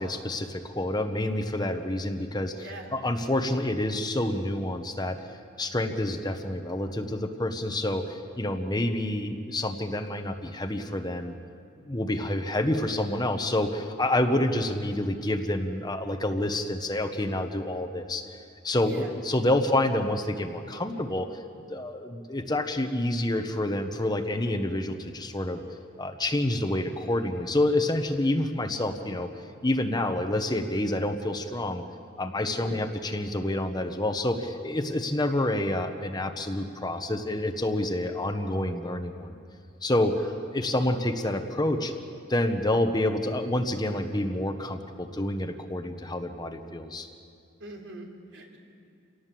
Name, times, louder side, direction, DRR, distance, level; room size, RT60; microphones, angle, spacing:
voice 1, 0.0-5.2 5.6-11.3 11.8-18.4 18.6-21.4 21.7-25.6 26.0-29.3 29.6-31.8 32.2-39.3 39.8-40.2 40.5-41.9 42.3-47.1, left 1 dB, 20° left, 6 dB, 1.1 m, -28 dB
voice 2, 2.6-3.0 18.8-19.1 32.4-32.8 40.2-40.3 47.6-48.6, right 1 dB, 70° right, 1 dB, 3.5 m, -42 dB
27.5 x 18.0 x 7.6 m, 2.4 s
head